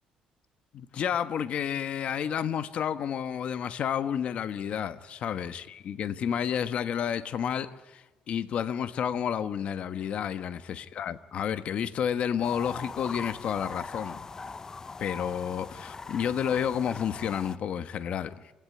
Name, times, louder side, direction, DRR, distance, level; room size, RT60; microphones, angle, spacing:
voice 1, 0.7-14.2 15.0-18.4, left 8 dB, 55° left, 1.3 m, -30 dB
sound 1, 12.4-17.6, left 4 dB, 25° left, 0.9 m, -41 dB
27.0 x 16.5 x 9.3 m
cardioid pair, 110°, 2 cm